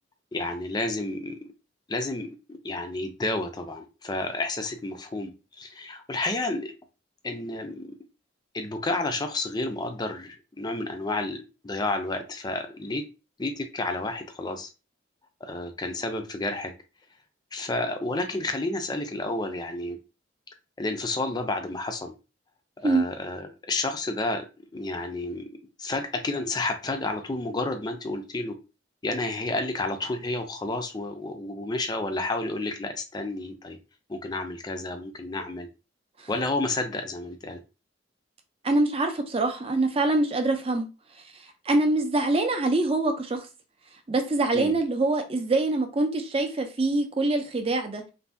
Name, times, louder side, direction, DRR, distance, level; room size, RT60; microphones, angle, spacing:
voice 1, 0.3-1.4 1.9-5.3 5.6-6.8 7.2-7.9 8.5-13.0 13.4-14.7 15.4-16.7 17.5-20.0 20.8-22.1 22.8-24.5 24.7-25.5 25.8-28.6 29.0-33.8 34.1-35.7 36.3-37.6 44.5-44.8, left 2 dB, 20° left, 0.4 m, -30 dB
voice 2, 38.6-40.9 41.7-43.5 44.1-48.0, right 2 dB, 30° right, 0.5 m, -24 dB
2.6 x 2.2 x 3.3 m
head